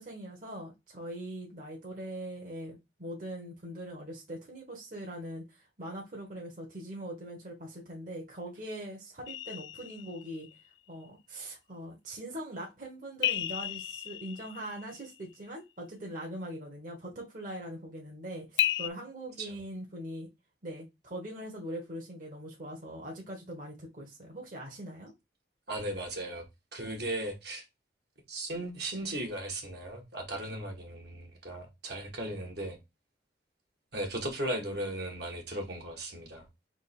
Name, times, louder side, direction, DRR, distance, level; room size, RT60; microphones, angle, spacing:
voice 1, 0.0-10.5 10.9-20.3 20.6-25.1, right 1 dB, 45° right, 1.2 m, -42 dB
sound 1, 9.3-10.6 13.2-15.2 18.6-18.9, left 13 dB, 70° left, 0.3 m, -33 dB
voice 2, 25.7-26.4 26.7-27.6 28.3-32.8 33.9-36.5, right 1 dB, 60° right, 1.4 m, -37 dB
3.7 x 2.9 x 4.2 m
head